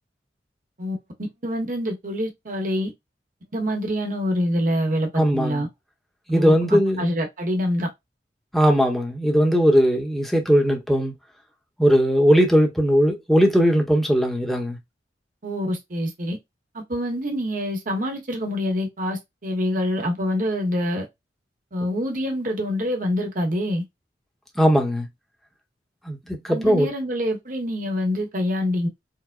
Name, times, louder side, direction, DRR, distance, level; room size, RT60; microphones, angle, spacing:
voice 1, 1.4-2.9 3.5-5.7 6.3-7.9 15.4-16.4 16.7-21.1 21.7-23.8 26.5-28.9, equal, 50° right, 1.1 m, -26 dB
voice 2, 5.1-5.6 6.3-7.1 8.5-11.1 11.8-14.8 24.6-25.1 26.0-26.9, equal, ahead, 0.8 m, -19 dB
4.7 x 2.1 x 2.2 m
head